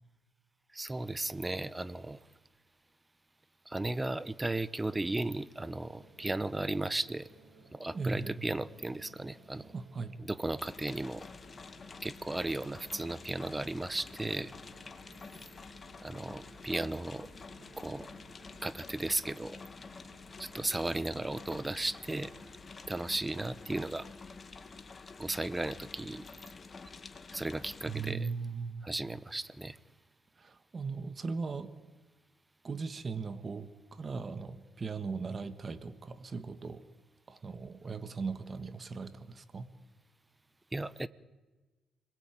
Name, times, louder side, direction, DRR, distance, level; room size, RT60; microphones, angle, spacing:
voice 1, 0.7-2.2 3.7-7.3 7.7-9.7 10.2-11.3 12.0-14.5 16.0-17.3 17.8-18.1 18.6-19.6 20.4-22.3 22.9-24.1 25.2-26.3 27.3-28.3 28.8-29.8 40.7-41.1, right 2 dB, 15° right, 1.0 m, -35 dB
sound 1, 5.6-23.4, right 3 dB, 65° right, 6.6 m, -60 dB
voice 2, 7.9-8.4 9.7-10.2 27.9-28.9 30.4-31.7 32.6-36.8 37.3-39.7, right 4 dB, 35° right, 1.6 m, -38 dB
sound 2, 10.6-28.1, left 4 dB, 35° left, 2.4 m, -49 dB
29.0 x 21.5 x 9.1 m
cardioid pair, 90°, 0 cm